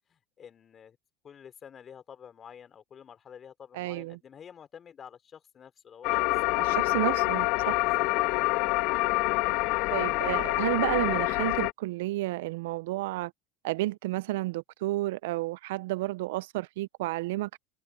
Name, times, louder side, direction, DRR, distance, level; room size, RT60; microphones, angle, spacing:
voice 1, 0.1-1.0 1.2-7.1 7.5-8.1, left 8 dB, 35° left, 4.0 m, -49 dB
voice 2, 3.8-4.2 6.7-7.7 9.9-13.3 13.6-17.6, right 18 dB, 75° right, 0.7 m, -31 dB
sound 1, 6.0-11.7, left 23 dB, 60° left, 0.5 m, -26 dB
hypercardioid pair, 95°, 0 cm